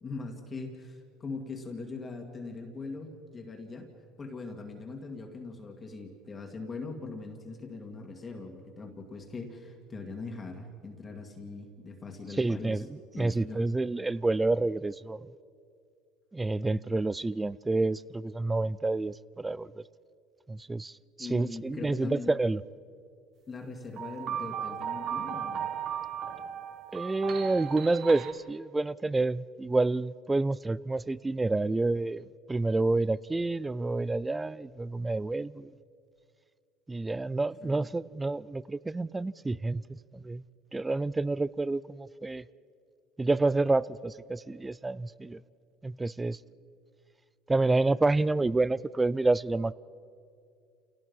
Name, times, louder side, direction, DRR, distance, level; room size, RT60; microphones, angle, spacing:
voice 1, 0.0-3.9 4.2-12.8 13.1-13.6 21.2-22.3 23.5-25.7 37.6-37.9, left 3 dB, 25° left, 2.2 m, -41 dB
voice 2, 12.4-15.3 16.3-19.8 20.5-20.9 21.2-22.6 26.9-35.7 36.9-40.4 40.7-42.4 43.2-45.4 45.8-46.4 47.5-49.7, right 2 dB, 15° right, 0.4 m, -29 dB
sound 1, 24.0-28.3, right 9 dB, 50° right, 1.5 m, -36 dB
29.0 x 18.0 x 5.5 m
supercardioid pair, 105°, 0 cm